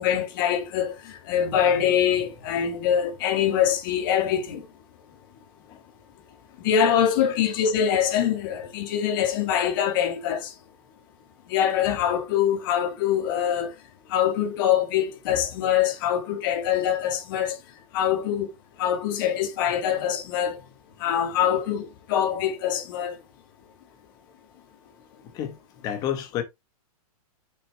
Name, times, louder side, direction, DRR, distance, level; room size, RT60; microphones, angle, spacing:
voice 1, 0.0-4.7 6.6-10.5 11.5-13.7 14.1-17.6 17.9-18.5 18.8-20.6 21.0-23.2, left 9 dB, 35° left, 1.8 m, -24 dB
voice 2, 25.8-26.4, left 10 dB, 20° left, 1.2 m, -29 dB
6.8 x 6.2 x 3.4 m
hypercardioid pair, 175°, 19 cm